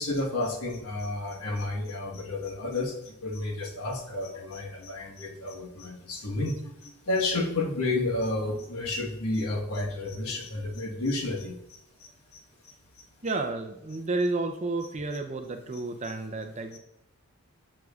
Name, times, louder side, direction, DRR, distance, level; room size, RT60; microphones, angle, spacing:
voice 1, 0.0-12.7 13.3-13.4 15.7-16.1, left 2 dB, 85° left, 1 dB, 1.3 m, -31 dB
voice 2, 13.2-16.8, right 2 dB, 30° right, 5 dB, 0.6 m, -31 dB
12.0 x 6.3 x 2.4 m, 0.82 s
head